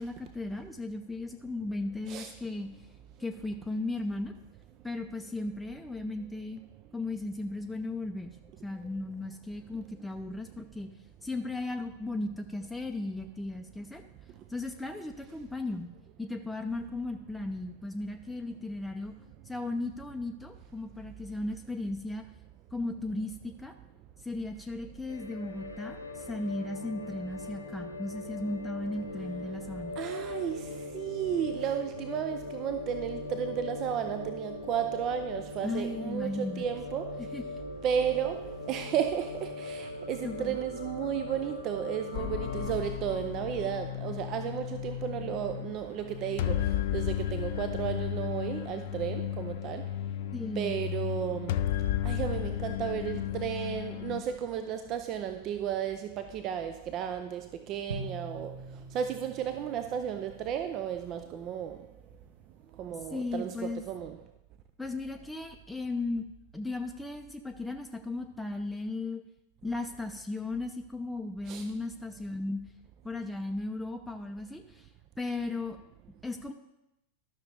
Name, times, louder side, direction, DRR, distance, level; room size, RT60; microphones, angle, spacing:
voice 1, 0.0-2.7 3.2-4.3 4.8-6.6 6.9-8.4 8.6-10.9 11.2-14.1 14.5-15.9 16.2-19.1 19.4-22.3 22.7-23.7 24.2-29.9 35.6-36.6 37.2-37.4 40.2-40.6 50.3-50.8 63.1-63.9 64.8-66.3 66.5-69.2 69.6-72.6 73.0-74.9 75.2-75.8 76.2-76.5, left 2 dB, 5° left, 0.6 m, -36 dB
sound 1, 25.1-42.7, left 2 dB, 80° left, 1.0 m, -40 dB
voice 2, 30.0-37.3 37.8-50.0 50.6-51.7 52.0-61.9 62.7-64.2 71.5-71.6, right 9 dB, 35° right, 0.5 m, -33 dB
sound 2, 42.1-54.2, left 12 dB, 55° left, 0.4 m, -34 dB
sound 3, 57.9-61.2, right 2 dB, 75° right, 1.5 m, -44 dB
12.0 x 6.0 x 3.4 m
figure-of-eight pair, 90°, 0 cm